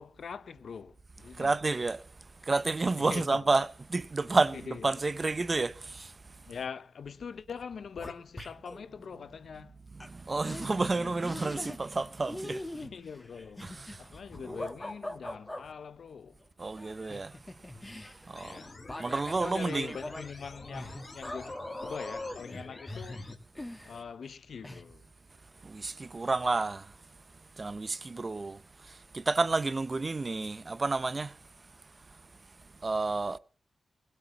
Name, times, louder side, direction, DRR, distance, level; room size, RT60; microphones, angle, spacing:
voice 1, 0.0-1.6 3.0-3.4 4.7-4.9 6.5-9.8 10.9-11.1 12.7-13.7 14.0-16.4 18.4-18.8 19.4-23.3 23.8-25.1, left 6 dB, 65° left, 0.7 m, -43 dB
voice 2, 1.4-2.0 2.4-6.1 9.9-12.6 13.6-14.0 16.6-17.3 18.3-18.6 19.0-19.9 25.6-26.9 27.6-28.6 28.9-31.3 32.8-33.4, right 3 dB, 30° right, 0.7 m, -30 dB
sound 1, 7.2-7.3 7.6-8.8 10.0-10.1 10.4-10.7 11.2-12.0 12.3-15.6 16.8-24.3 24.6-24.8, left 1 dB, 15° left, 2.0 m, -42 dB
sound 2, 18.4-23.4, left 3 dB, 35° left, 2.8 m, -49 dB
20.0 x 8.0 x 7.2 m
wide cardioid pair, 115°, 0 cm